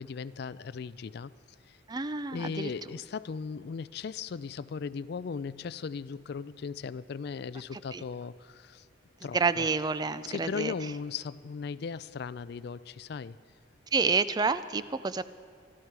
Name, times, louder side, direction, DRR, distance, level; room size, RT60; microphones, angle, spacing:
voice 1, 0.0-1.3 1.7-1.8 2.3-8.9 9.2-9.7 10.2-13.4, left 5 dB, 55° left, 17 dB, 0.4 m, -37 dB
voice 2, 1.9-2.7 7.9-8.0 9.3-10.7 13.9-15.2, right 4 dB, 20° right, 14 dB, 0.3 m, -28 dB
24.0 x 13.0 x 4.7 m, 2.3 s
head